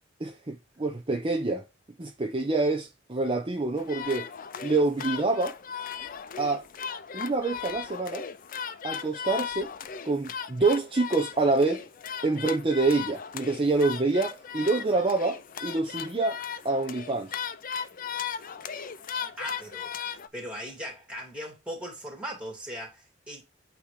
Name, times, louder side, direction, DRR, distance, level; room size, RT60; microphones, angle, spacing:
voice 1, 0.2-1.6 2.0-4.3 4.6-5.6 6.4-6.6 7.1-8.2 8.8-9.7 10.0-11.8 12.2-16.4 16.6-17.4, right 3 dB, 25° right, 0.8 m, -26 dB
sound 1, 3.8-20.3, left 7 dB, 45° left, 0.5 m, -37 dB
voice 2, 19.4-23.4, equal, 5° right, 2.9 m, -39 dB
8.5 x 3.1 x 5.0 m
head